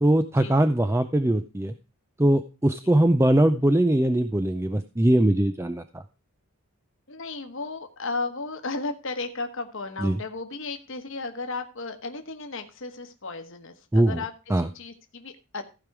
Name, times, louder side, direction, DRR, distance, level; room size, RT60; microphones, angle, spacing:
voice 1, 0.0-1.7 2.2-6.0 10.0-10.2 13.9-14.2 14.5-14.7, right 1 dB, 10° right, 8 dB, 0.4 m, -21 dB
voice 2, 7.1-14.3 14.7-15.7, left 3 dB, 60° left, 6 dB, 1.3 m, -34 dB
15.0 x 5.3 x 4.7 m, 0.31 s
head